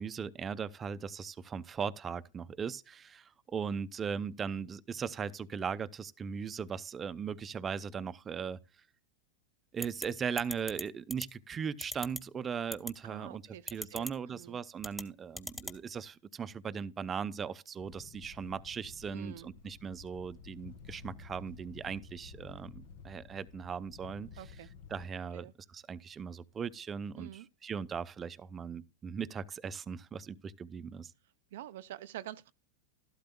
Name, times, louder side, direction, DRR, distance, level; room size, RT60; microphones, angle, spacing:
voice 1, 0.0-8.6 9.7-24.4 24.9-31.1, right 6 dB, 25° right, 0.6 m, -38 dB
sound 1, 9.8-10.1 10.4-10.8 11.1-11.3 11.8-12.2 12.7-12.9 13.7-14.1 14.8-15.0 15.4-15.8, equal, 5° left, 1.0 m, -38 dB
voice 2, 13.0-14.6 19.1-19.5 24.4-24.7 25.3-25.5 27.2-27.5 31.5-32.5, right 13 dB, 70° right, 0.5 m, -47 dB
sound 2, 17.8-25.1, left 4 dB, 65° left, 1.3 m, -52 dB
13.0 x 12.0 x 2.2 m
hypercardioid pair, 105°, 0 cm